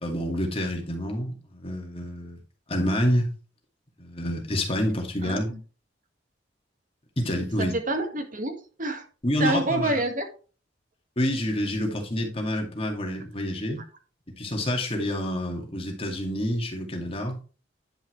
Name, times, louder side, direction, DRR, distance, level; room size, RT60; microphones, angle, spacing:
voice 1, 0.0-2.4 2.7-3.3 4.0-5.5 7.2-7.7 9.2-10.0 11.2-13.8 14.4-17.4, left 1 dB, 30° left, 2.4 m, -28 dB
voice 2, 7.6-9.0 9.4-10.3, right 2 dB, 45° right, 1.8 m, -27 dB
10.5 x 5.6 x 3.2 m
head